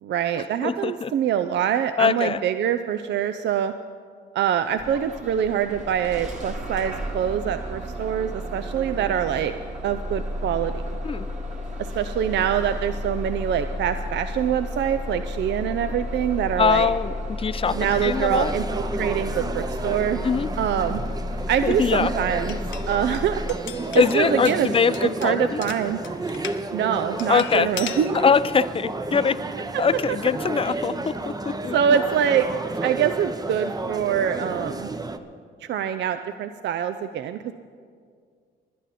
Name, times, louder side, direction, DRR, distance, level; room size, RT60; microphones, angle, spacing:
voice 1, 0.0-3.7 4.3-9.5 9.8-10.8 11.8-16.9 17.7-20.2 20.6-21.0 21.5-22.6 22.9-23.4 23.9-24.7 25.0-26.0 26.7-28.2 29.7-29.8 30.1-30.2 31.7-32.5 32.8-34.9 35.6-37.5, right 9 dB, 65° right, 10 dB, 0.5 m, -24 dB
voice 2, 0.6-1.1 2.0-2.4 11.0-11.3 16.6-18.5 20.2-20.5 21.6-22.1 24.0-25.6 27.3-27.7 28.1-29.4 29.8-31.8, left 6 dB, 30° left, 15 dB, 0.4 m, -22 dB
Bus / Engine starting, 4.8-23.5, left 1 dB, 35° right, 2.0 m, -32 dB
sound 1, 17.6-35.2, right 2 dB, 20° right, 0.7 m, -32 dB
sound 2, 22.2-26.6 27.2-28.1, left 10 dB, 65° left, 0.8 m, -39 dB
21.0 x 10.0 x 4.2 m, 2.1 s
cardioid pair, 90°, 20 cm